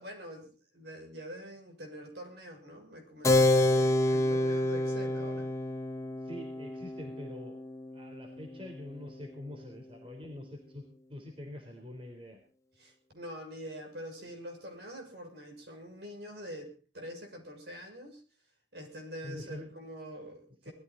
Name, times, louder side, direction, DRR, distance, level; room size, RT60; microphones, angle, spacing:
voice 1, 0.0-5.5 12.8-18.2 18.7-20.7, equal, 65° right, 3 dB, 6.5 m, -45 dB
Keyboard (musical), 3.2-9.4, left 1 dB, 15° left, 1.3 m, -29 dB
voice 2, 6.2-7.6 7.9-12.4 19.2-19.7, left 1 dB, 30° right, 2 dB, 4.0 m, -45 dB
20.5 x 14.5 x 4.1 m, 0.36 s
head